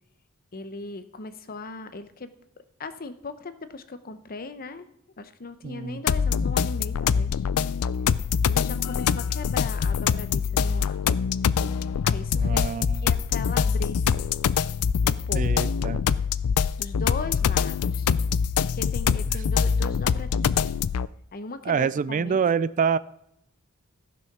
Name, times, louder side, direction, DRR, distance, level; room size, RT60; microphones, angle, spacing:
voice 1, 0.5-2.3 2.8-4.9 5.2-7.4 8.5-11.1 12.0-12.7 13.0-14.3 15.0-15.4 16.8-18.1 18.7-20.7 21.3-22.4, left 3 dB, 45° left, 11 dB, 0.8 m, -38 dB
voice 2, 5.6-6.0 12.4-13.1 15.3-16.0 21.7-23.0, right 6 dB, 35° right, 16 dB, 0.3 m, -26 dB
sound 1, 6.1-21.1, left 7 dB, 85° left, 0.4 m, -24 dB
14.5 x 6.2 x 6.0 m, 0.79 s
head